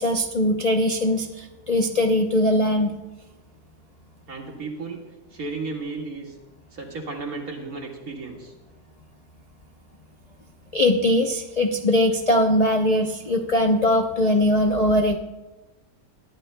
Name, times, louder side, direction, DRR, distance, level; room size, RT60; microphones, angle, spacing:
voice 1, 0.0-2.9 10.7-15.2, left 1 dB, 85° left, 1 dB, 0.3 m, -21 dB
voice 2, 4.3-5.0 5.3-6.4 6.7-8.5, right 3 dB, 50° right, 0 dB, 2.4 m, -34 dB
21.5 x 13.5 x 2.2 m, 1.1 s
omnidirectional pair, 1.9 m